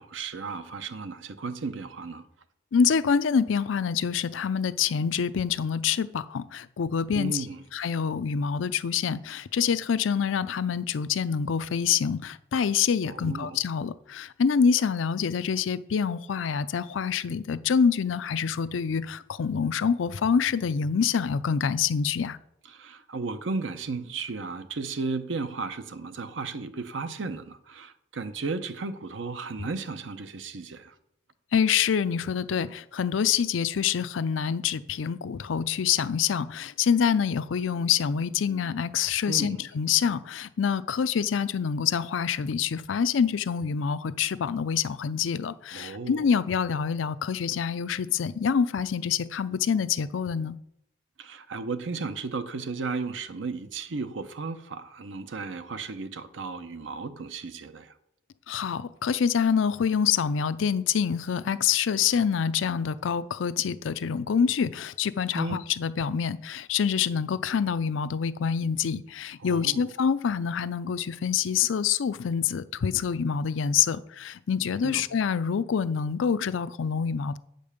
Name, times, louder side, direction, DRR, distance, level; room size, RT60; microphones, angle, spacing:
voice 1, 0.0-2.3 7.1-7.6 13.0-13.6 22.7-30.9 39.3-39.7 45.7-46.3 51.2-57.9 65.3-65.6 69.4-69.9 74.8-75.0, right 4 dB, 85° right, 0.7 m, -34 dB
voice 2, 2.7-7.5 7.7-22.4 31.5-50.6 58.5-77.4, left 7 dB, 90° left, 0.4 m, -26 dB
8.5 x 5.3 x 6.6 m
head